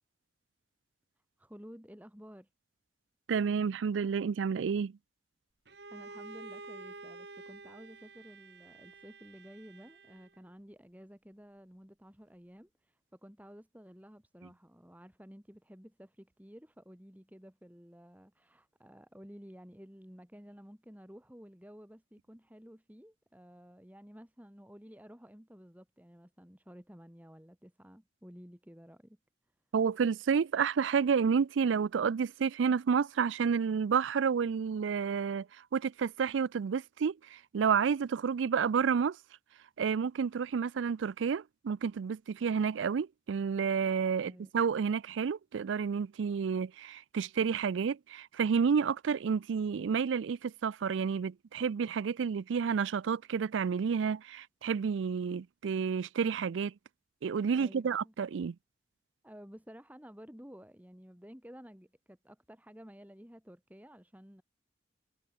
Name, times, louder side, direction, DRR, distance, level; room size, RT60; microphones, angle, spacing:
voice 1, 1.4-2.5 5.9-29.2 44.2-44.5 57.6-58.1 59.2-64.4, equal, 10° right, 3.2 m, -53 dB
voice 2, 3.3-4.9 29.7-35.5 35.7-39.2 39.8-56.7 57.2-58.5, right 6 dB, 85° right, 0.4 m, -30 dB
Bowed string instrument, 5.7-10.5, right 3 dB, 60° right, 3.2 m, -50 dB
head